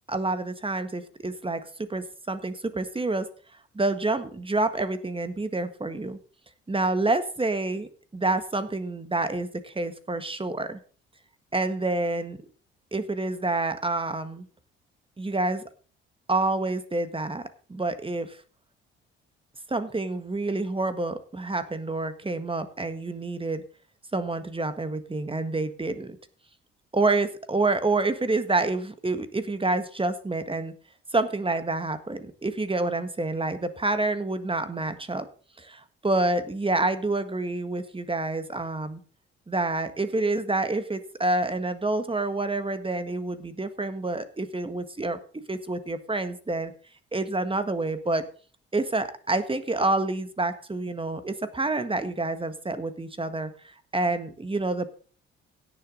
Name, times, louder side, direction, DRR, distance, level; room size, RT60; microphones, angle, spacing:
voice 1, 0.1-3.3 3.7-6.2 6.7-10.8 11.5-12.4 12.9-14.5 15.2-15.6 16.3-17.4 17.7-18.4 19.7-23.6 24.1-26.2 26.9-30.7 31.1-35.3 35.6-39.0 39.5-46.7 47.1-48.2 48.7-54.9, right 2 dB, 20° right, 10 dB, 1.6 m, -28 dB
17.0 x 7.0 x 4.0 m, 0.41 s
hypercardioid pair, 45°, 29 cm